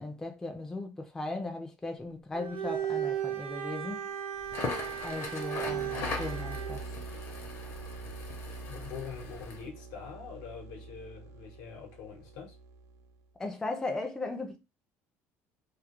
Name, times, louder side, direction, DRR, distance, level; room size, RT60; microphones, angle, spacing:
voice 1, 0.0-4.1 5.0-6.8 13.4-14.6, left 2 dB, 10° left, 0.3 m, -37 dB
Bowed string instrument, 2.3-6.8, right 9 dB, 90° right, 0.7 m, -36 dB
Crackle, 4.4-9.7, left 4 dB, 45° left, 0.7 m, -40 dB
sound 1, 5.6-13.2, right 3 dB, 65° right, 0.4 m, -44 dB
voice 2, 8.7-12.6, left 6 dB, 80° left, 0.8 m, -44 dB
2.3 x 2.0 x 2.8 m
cardioid pair, 145°, 6 cm